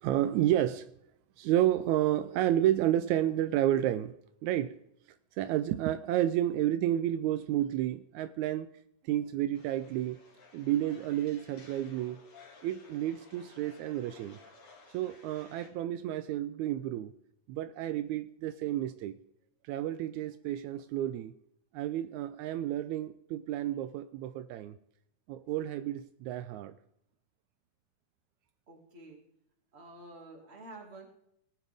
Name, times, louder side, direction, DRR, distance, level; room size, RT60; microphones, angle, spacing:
voice 1, 0.0-0.9 1.4-4.1 4.4-4.8 5.4-8.7 9.0-10.2 10.5-12.2 12.6-14.4 14.9-17.1 17.5-19.2 19.7-21.3 21.7-24.8 25.3-26.8, right 12 dB, 80° right, 1.9 m, -31 dB
sound 1, 9.5-15.7, left 4 dB, 65° left, 3.3 m, -56 dB
voice 2, 28.7-29.2 29.7-31.1, right 2 dB, 25° right, 2.1 m, -49 dB
18.5 x 8.2 x 3.5 m
omnidirectional pair, 3.4 m